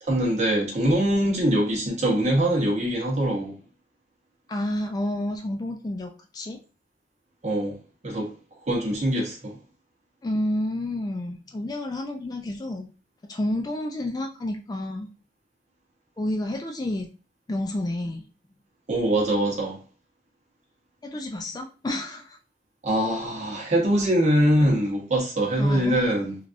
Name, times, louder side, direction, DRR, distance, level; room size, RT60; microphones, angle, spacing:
voice 1, 0.0-3.5 7.4-7.8 8.0-8.3 8.7-9.5 18.9-19.8 22.8-26.4, right 1 dB, 40° right, 0.9 m, -23 dB
voice 2, 4.5-6.6 10.2-12.9 13.2-15.1 16.2-17.1 17.5-18.2 21.0-22.4 25.6-26.0, left 1 dB, 20° left, 0.3 m, -30 dB
3.3 x 2.4 x 2.5 m
head